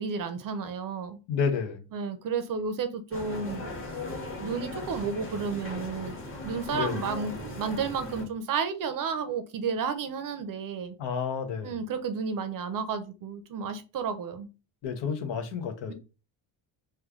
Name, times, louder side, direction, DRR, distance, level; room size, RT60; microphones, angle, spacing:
voice 1, 0.0-1.2 1.9-3.7 4.3-10.9 11.6-14.5, right 5 dB, 45° right, 0.6 m, -32 dB
voice 2, 1.3-1.8 6.7-7.0 11.0-11.7 14.8-15.9, left 6 dB, 70° left, 0.9 m, -30 dB
sound 1, 3.1-8.2, left 2 dB, 30° left, 1.2 m, -38 dB
3.2 x 2.3 x 3.6 m
cardioid pair, 130°, 45 cm